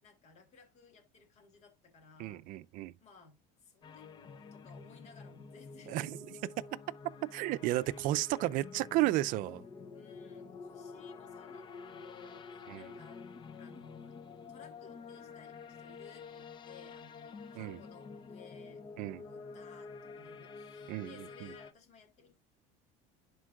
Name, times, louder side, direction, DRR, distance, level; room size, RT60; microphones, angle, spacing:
voice 1, 0.0-2.4 3.0-6.1 7.6-7.8 9.9-13.2 13.5-14.2 14.5-22.4, left 5 dB, 45° left, 2.9 m, -59 dB
voice 2, 2.2-2.9 5.9-6.2 7.3-9.6 12.7-12.9 17.5-17.8 19.0-19.2 20.9-21.1 21.4-21.5, right 16 dB, 55° right, 0.5 m, -33 dB
sound 1, 3.8-21.7, left 5 dB, 30° left, 0.7 m, -49 dB
11.0 x 4.5 x 2.4 m
cardioid pair, 130°, 16 cm